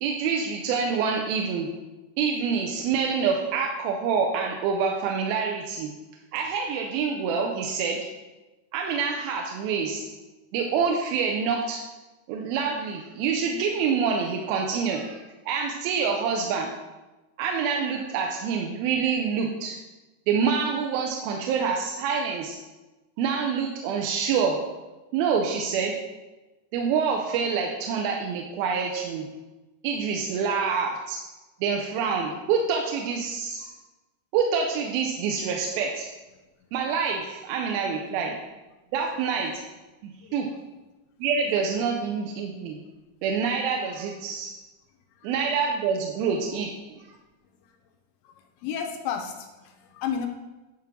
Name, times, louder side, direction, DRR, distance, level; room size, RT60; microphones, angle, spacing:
voice 1, 0.0-1.7 2.2-5.9 6.3-8.0 8.7-10.0 10.5-11.8 12.3-15.2 15.5-16.7 17.4-19.8 20.3-22.6 23.2-24.6 25.1-26.0 26.7-29.2 29.8-31.2 31.6-33.7 34.3-36.1 36.7-38.3 38.9-39.5 40.0-40.5 41.2-42.8 43.2-44.5 45.2-47.0, right 6 dB, 80° right, 1 dB, 2.4 m, -26 dB
voice 2, 48.2-50.3, left 7 dB, 80° left, 5 dB, 2.2 m, -33 dB
10.5 x 3.7 x 5.9 m, 1.1 s
omnidirectional pair, 4.5 m